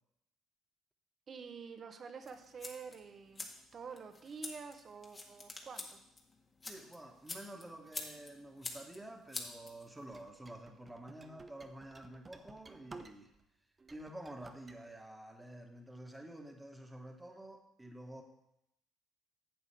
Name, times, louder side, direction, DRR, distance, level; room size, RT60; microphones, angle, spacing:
voice 1, 1.3-6.0, right 5 dB, 45° right, 8 dB, 1.2 m, -48 dB
sound 1, 2.2-10.2, left 3 dB, 35° left, 1.9 m, -48 dB
voice 2, 6.6-13.3 13.9-18.2, right 1 dB, 10° right, 3 dB, 1.7 m, -50 dB
sound 2, 10.1-13.4 13.8-14.8, right 3 dB, 30° right, 0.8 m, -54 dB
11.0 x 8.1 x 3.6 m, 0.82 s
hypercardioid pair, 55°, 0 cm